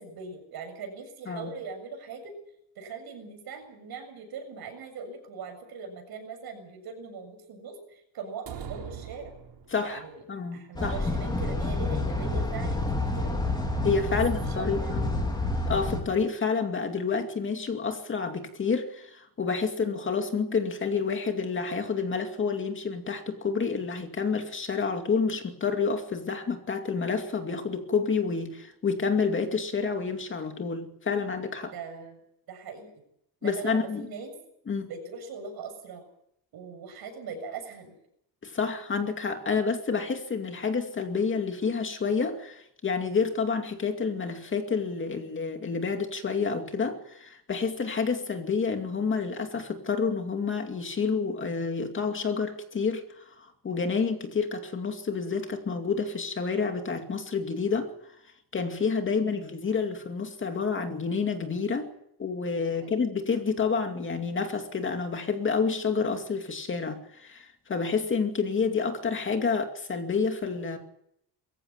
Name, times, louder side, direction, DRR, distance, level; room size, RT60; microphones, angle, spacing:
voice 1, 0.0-2.3 2.8-9.3 9.8-10.2 10.5-13.3 14.1-14.2 14.5-15.4 19.8-20.1 31.7-32.2 32.5-32.9 33.4-34.4 34.9-36.1 36.5-37.9 62.7-63.1, right 5 dB, 60° right, 6 dB, 7.2 m, -41 dB
sound 1, 8.5-10.1, right 8 dB, 85° right, 3.7 m, -41 dB
voice 2, 9.7-10.0 10.3-10.9 13.8-15.1 15.7-31.7 33.4-34.0 34.7-34.9 38.4-57.9 58.5-61.9 62.2-70.8, left 5 dB, 30° left, 5 dB, 2.4 m, -29 dB
sound 2, 10.8-16.0, left 2 dB, 10° left, 4.2 m, -29 dB
22.5 x 15.5 x 8.9 m, 0.74 s
cardioid pair, 165°, 41 cm